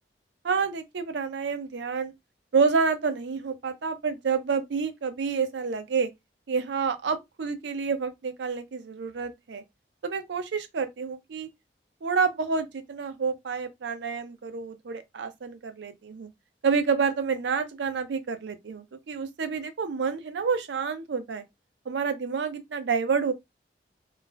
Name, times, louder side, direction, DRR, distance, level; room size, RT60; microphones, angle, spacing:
voice 1, 0.4-2.1 2.5-6.1 6.5-9.6 10.0-11.5 12.0-16.3 16.6-21.4 21.9-23.3, right 5 dB, 85° right, 0.5 m, -28 dB
2.4 x 2.0 x 3.2 m
head